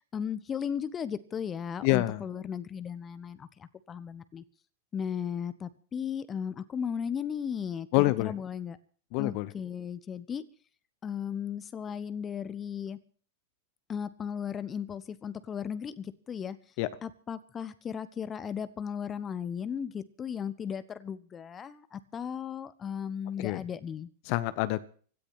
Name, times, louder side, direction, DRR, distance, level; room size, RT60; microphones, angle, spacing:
voice 1, 0.1-4.4 4.9-8.8 9.2-10.5 11.0-13.0 13.9-16.6 17.0-24.1, left 7 dB, 25° left, 15 dB, 1.1 m, -36 dB
voice 2, 1.8-2.2 7.9-8.3 9.1-9.5 16.8-16.9 23.4-23.6 24.3-24.8, left 19 dB, 45° left, 15 dB, 1.1 m, -27 dB
17.0 x 13.0 x 6.1 m, 0.43 s
figure-of-eight pair, 90°, 0 cm